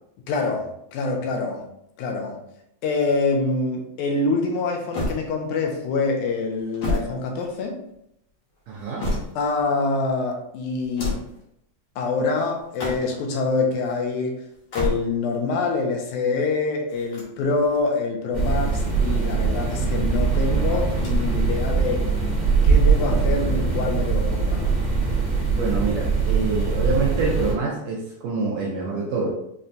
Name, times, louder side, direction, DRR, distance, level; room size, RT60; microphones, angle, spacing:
voice 1, 0.3-1.6 2.0-2.4 2.8-7.8 9.4-11.2 12.0-14.4 14.7-22.1 22.6-24.6, left 3 dB, 80° left, 1 dB, 2.1 m, -25 dB
sound 1, 4.9-5.7 6.5-7.9 8.6-9.6 10.8-11.4 12.6-13.3 14.5-15.4 16.9-17.9 18.8-19.7 20.9-21.5 21.8-21.9 22.9-23.7, left 1 dB, 65° left, 1.4 m, -31 dB
voice 2, 8.7-9.1 25.5-29.3, right 4 dB, 80° right, -3 dB, 1.6 m, -26 dB
sound 2, 18.3-27.5, right 4 dB, 45° right, 0.8 m, -22 dB
5.7 x 2.2 x 2.5 m, 0.77 s
omnidirectional pair, 3.5 m